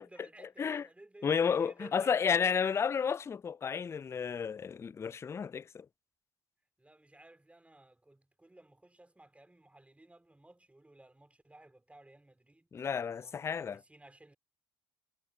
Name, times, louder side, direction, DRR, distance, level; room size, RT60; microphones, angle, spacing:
voice 1, 0.0-1.3 1.6-2.7 6.8-14.4, right 1 dB, 10° right, 4.3 m, -57 dB
voice 2, 1.2-5.9 12.7-13.8, left 6 dB, 20° left, 0.3 m, -31 dB
figure-of-eight pair, 60°, 14 cm